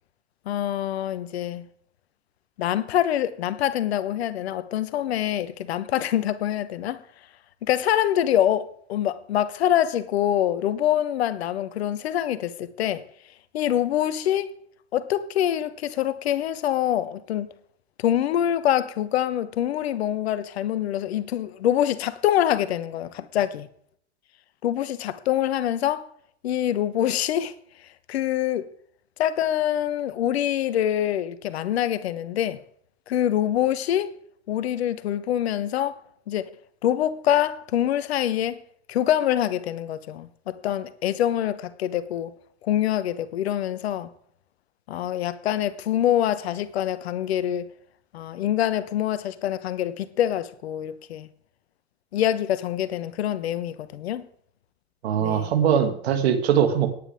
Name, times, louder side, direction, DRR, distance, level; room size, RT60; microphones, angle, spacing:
voice 1, 0.5-1.6 2.6-7.0 7.6-13.0 13.5-14.6 14.9-17.5 18.0-23.7 24.6-26.1 26.4-27.5 28.1-28.7 29.2-32.6 33.1-34.1 34.5-36.0 36.3-36.5 36.8-38.6 38.9-42.3 42.6-44.1 44.9-47.7 48.1-51.3 52.1-54.2 55.2-55.5, left 11 dB, 65° left, 1.2 m, -25 dB
voice 2, 55.0-56.9, right 8 dB, 65° right, 2.6 m, -21 dB
18.5 x 9.7 x 3.7 m
figure-of-eight pair, 90°, 34 cm